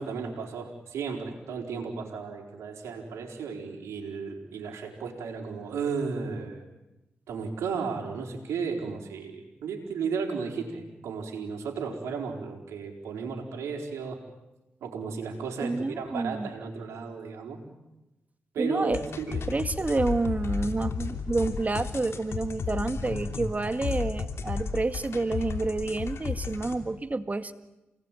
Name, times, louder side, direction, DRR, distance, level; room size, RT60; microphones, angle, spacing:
voice 1, 0.0-6.6 7.3-14.2 14.8-17.6 18.5-19.4, right 5 dB, 85° right, 1 dB, 4.5 m, -34 dB
voice 2, 15.6-16.5 18.6-19.0 19.5-27.5, right 2 dB, 35° right, 10 dB, 1.8 m, -29 dB
sound 1, 18.9-26.8, left 5 dB, 70° left, 3.0 m, -33 dB
29.0 x 20.0 x 9.2 m, 1.0 s
supercardioid pair, 45°, 5 cm